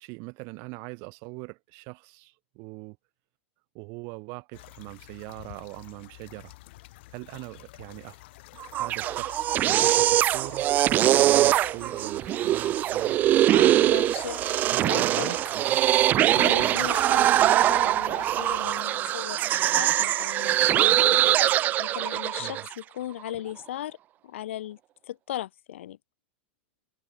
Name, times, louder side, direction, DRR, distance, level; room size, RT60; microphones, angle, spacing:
voice 1, 0.0-3.0 3.7-6.5 7.1-8.2 8.8-13.2 13.6-13.9 14.7-15.8 16.5-16.9 22.4-22.7, right 31 dB, 45° right, 3.2 m, -41 dB
sound 1, 4.5-18.8, left 19 dB, 60° left, 5.8 m, -48 dB
sound 2, 8.6-22.7, right 13 dB, 25° right, 0.4 m, -22 dB
voice 2, 13.5-15.4 16.3-21.1 21.8-24.0 24.2-24.8 25.0-26.0, left 13 dB, 85° left, 2.6 m, -37 dB
supercardioid pair, 150°, 6 cm